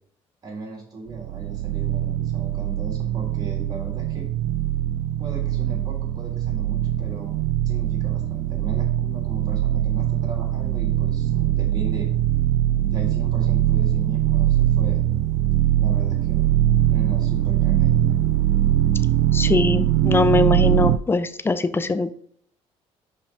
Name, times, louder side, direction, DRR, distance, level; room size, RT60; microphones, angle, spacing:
voice 1, 0.4-4.3 5.2-7.4 7.6-12.1 12.8-15.0 15.7-16.5 16.9-18.1, right 3 dB, 35° right, -2 dB, 3.4 m, -37 dB
sound 1, 1.1-21.0, right 13 dB, 85° right, 0.4 m, -22 dB
voice 2, 19.3-22.1, left 3 dB, 20° left, 12 dB, 0.6 m, -21 dB
5.5 x 5.2 x 4.9 m, 0.64 s
cardioid pair, 100°, 12 cm